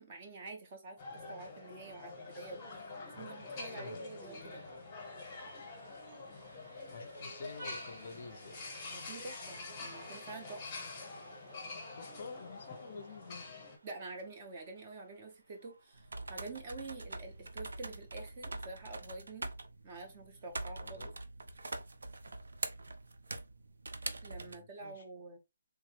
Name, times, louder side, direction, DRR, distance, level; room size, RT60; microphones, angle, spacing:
voice 1, 0.0-2.6 3.2-4.6 8.9-10.7 13.8-19.5 19.8-21.1 24.2-25.4, right 3 dB, 20° right, 0.5 m, -47 dB
sound 1, 1.0-13.8, left 3 dB, 10° left, 0.8 m, -47 dB
Vehicle horn car horn honking, 1.7-18.5, right 2 dB, 70° right, 0.9 m, -58 dB
voice 2, 3.6-4.0 6.9-8.6 11.9-13.5 20.8-21.1 24.4-25.0, left 4 dB, 40° left, 0.4 m, -49 dB
sound 2, 15.9-24.6, right 2 dB, 90° right, 0.5 m, -44 dB
3.4 x 2.0 x 3.0 m
hypercardioid pair, 180°, 0 cm